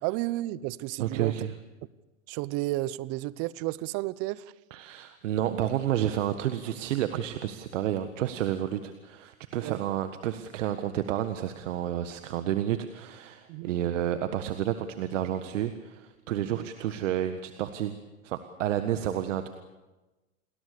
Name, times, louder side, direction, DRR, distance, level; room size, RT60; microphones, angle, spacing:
voice 1, 0.0-1.3 2.3-4.5 9.6-9.8 13.5-13.7 16.4-16.7, right 18 dB, 35° right, 20 dB, 0.9 m, -32 dB
voice 2, 1.0-1.5 4.7-18.0 18.2-19.5, right 11 dB, 60° right, 9 dB, 1.7 m, -30 dB
29.0 x 20.5 x 6.9 m, 1.1 s
hypercardioid pair, 115°, 42 cm